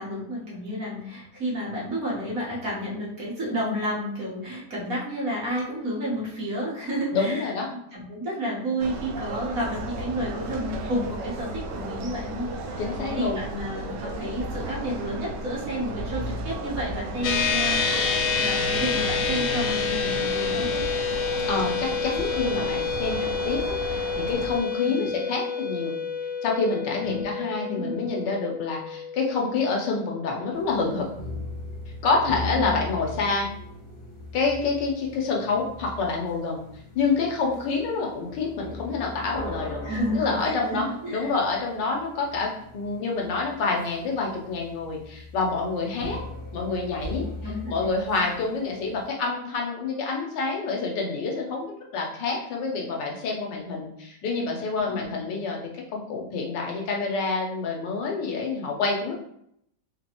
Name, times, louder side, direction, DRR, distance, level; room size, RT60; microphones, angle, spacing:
voice 1, 0.0-7.5 7.9-12.8 13.1-18.1 18.3-20.7 24.8-25.1 26.9-27.2 27.7-28.1 32.5-32.8 39.8-41.3 47.1-47.7 54.8-55.1, equal, 55° right, -5 dB, 1.6 m, -31 dB
voice 2, 7.1-7.7 12.8-13.4 21.5-23.2 23.4-26.0 26.4-31.1 32.0-33.5 34.3-36.6 36.9-39.8 40.1-46.2 46.5-47.3 47.7-59.1, left 4 dB, 90° left, 0 dB, 1.5 m, -27 dB
sound 1, 8.8-24.6, right 2 dB, 80° right, 1.2 m, -34 dB
sound 2, 17.2-30.8, left 5 dB, 70° left, 0.8 m, -28 dB
sound 3, 30.5-49.0, left 2 dB, 30° left, 0.5 m, -39 dB
3.9 x 3.0 x 2.9 m, 0.72 s
omnidirectional pair, 1.9 m